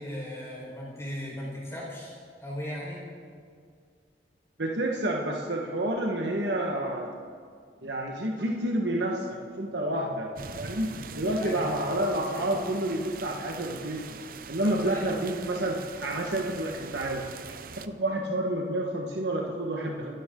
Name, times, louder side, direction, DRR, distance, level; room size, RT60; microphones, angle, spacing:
voice 1, 0.0-3.1 11.4-11.6 14.6-15.0, equal, 15° left, -5 dB, 4.9 m, -37 dB
voice 2, 4.6-7.1 7.8-10.3 10.6-14.2 14.5-20.2, right 1 dB, 70° right, 0 dB, 1.6 m, -29 dB
sound 1, 10.4-17.9, right 5 dB, 50° right, 0.7 m, -43 dB
28.0 x 12.5 x 3.9 m, 2.1 s
head